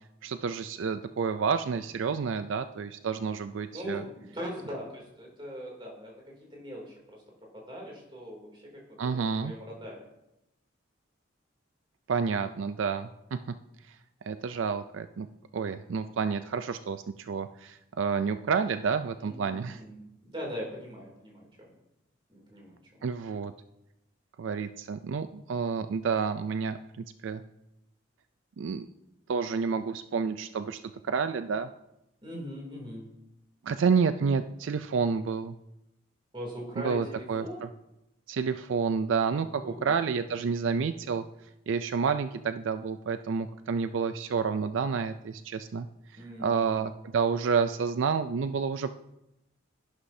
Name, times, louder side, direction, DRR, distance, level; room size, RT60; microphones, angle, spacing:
voice 1, 0.2-4.0 9.0-9.5 12.1-13.4 14.3-15.3 15.5-19.8 23.0-23.5 24.4-26.8 27.2-27.4 28.6-28.9 29.3-31.7 33.6-35.5 36.8-37.5 38.3-41.2 41.7-45.9 46.4-48.9, right 5 dB, 75° right, 10 dB, 0.4 m, -29 dB
voice 2, 3.7-7.2 7.5-10.0 19.2-21.7 22.3-23.0 32.2-33.1 36.3-37.7 39.3-39.9 46.1-46.8, equal, 25° right, -2 dB, 2.8 m, -41 dB
11.5 x 11.5 x 2.7 m, 0.88 s
head